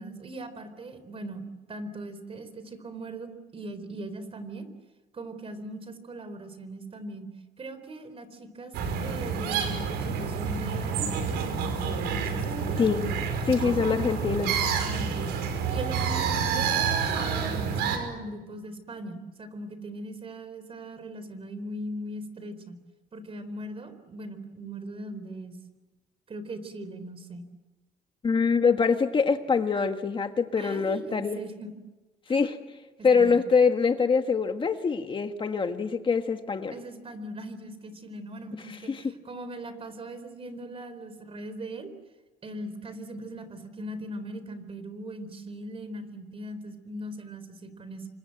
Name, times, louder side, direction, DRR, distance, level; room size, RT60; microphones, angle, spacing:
voice 1, 0.0-1.4 1.7-4.7 5.1-7.3 7.6-8.7 9.0-12.9 14.8-15.3 15.7-16.8 17.1-22.8 23.1-25.6 26.3-27.5 30.6-31.7 32.3-32.4 33.0-33.4 36.7-41.9 42.4-48.1, right 1 dB, 35° right, 11 dB, 4.3 m, -40 dB
sound 1, 8.7-18.0, right 6 dB, 85° right, 5.7 m, -28 dB
voice 2, 12.8-13.2 13.4-14.5 28.2-31.4 32.3-32.6 33.0-36.8 38.9-39.0, left 5 dB, 30° left, 7 dB, 1.6 m, -24 dB
29.0 x 25.5 x 8.0 m, 1.2 s
cardioid pair, 110°, 17 cm